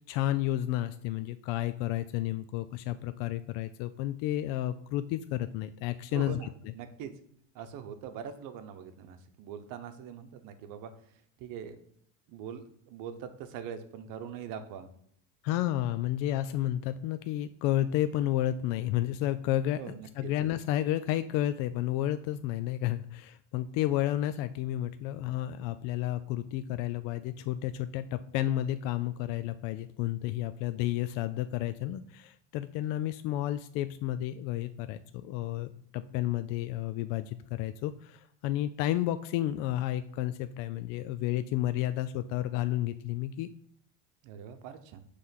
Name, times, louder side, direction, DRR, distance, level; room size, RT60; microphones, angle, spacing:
voice 1, 0.1-6.4 15.4-43.5, left 13 dB, 60° left, 12 dB, 0.5 m, -31 dB
voice 2, 6.1-7.1 7.5-10.9 11.4-11.8 12.3-14.9 19.8-20.3 44.2-45.0, right 8 dB, 60° right, 9 dB, 0.9 m, -42 dB
5.6 x 3.3 x 5.7 m, 0.66 s
supercardioid pair, 110°, 37 cm